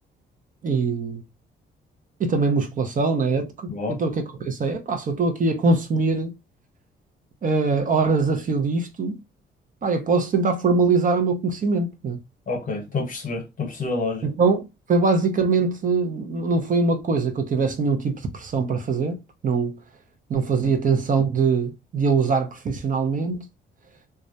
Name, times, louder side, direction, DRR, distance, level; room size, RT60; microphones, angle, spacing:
voice 1, 0.6-1.2 2.2-4.1 4.4-6.3 7.4-9.2 9.8-12.2 14.2-14.6 14.9-19.2 19.4-19.8 20.3-23.4, right 4 dB, 40° right, 0.5 m, -22 dB
voice 2, 3.7-4.0 12.5-14.3 20.6-20.7, left 3 dB, 40° left, 0.9 m, -28 dB
2.3 x 2.0 x 2.6 m
cardioid pair, 90°, 20 cm